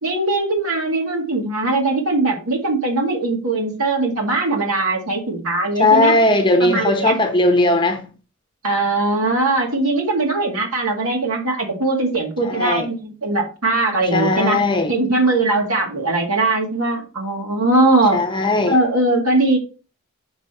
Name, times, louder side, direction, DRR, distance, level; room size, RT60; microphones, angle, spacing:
voice 1, 0.0-6.2 6.6-7.1 8.6-14.6 14.9-18.2 18.7-19.6, right 2 dB, 80° right, 2.1 m, -20 dB
voice 2, 5.8-8.0 12.4-12.9 14.1-14.9 18.1-18.8, left 2 dB, 20° left, 0.9 m, -17 dB
6.1 x 5.2 x 4.2 m
head